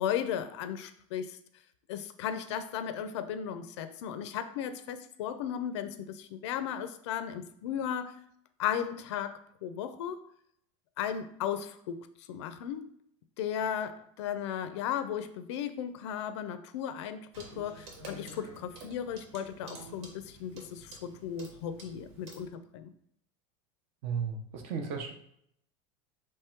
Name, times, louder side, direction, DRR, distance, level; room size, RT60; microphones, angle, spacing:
voice 1, 0.0-1.4 1.9-8.1 8.6-10.2 11.0-12.9 13.4-22.9, left 9 dB, 65° left, 10 dB, 0.5 m, -35 dB
Clock, 17.3-22.5, right 2 dB, 65° right, 1.4 m, -49 dB
voice 2, 24.0-25.1, right 6 dB, 40° right, 5 dB, 0.7 m, -34 dB
3.6 x 3.1 x 4.4 m, 0.69 s
supercardioid pair, 175°, 16 cm